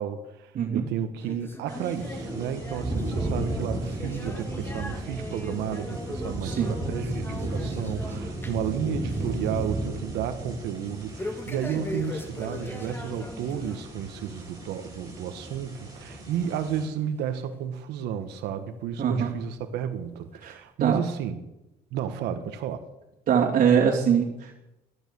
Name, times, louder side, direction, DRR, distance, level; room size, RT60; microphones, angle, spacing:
voice 1, 0.0-21.4 21.9-22.8, right 8 dB, 85° right, 8 dB, 1.3 m, -32 dB
sound 1, 1.2-8.7 9.0-9.4 9.7-9.8 11.2-13.9 14.3-14.4 15.1-15.2 16.1-16.2 17.0-17.1, left 1 dB, 15° left, 2.0 m, -40 dB
sound 2, 1.7-16.9, right 2 dB, 20° right, 7.5 m, -34 dB
voice 2, 19.0-19.3 20.4-20.5 20.8-21.0 23.3-24.5, right 7 dB, 55° right, -5 dB, 2.7 m, -22 dB
14.5 x 12.5 x 6.9 m, 0.93 s
cardioid pair, 110°, 17 cm